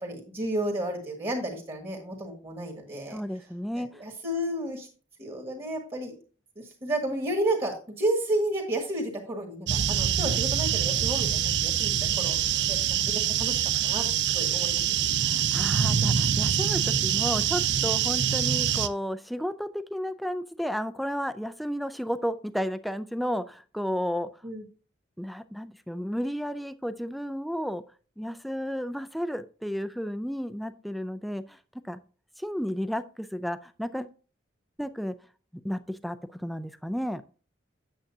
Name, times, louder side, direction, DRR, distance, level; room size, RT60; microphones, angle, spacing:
voice 1, 0.0-3.2 4.0-4.9 5.2-6.2 6.6-12.4 12.7-14.8 24.4-24.6, right 1 dB, 30° right, 1 dB, 1.7 m, -32 dB
voice 2, 3.1-4.0 15.2-24.3 25.2-27.8 28.2-31.6 31.8-32.0 32.4-34.1 34.8-35.1 35.5-37.2, equal, ahead, 12 dB, 0.4 m, -32 dB
sound 1, 9.7-18.9, right 9 dB, 60° right, 0.5 m, -25 dB
8.9 x 7.3 x 2.7 m, 0.38 s
head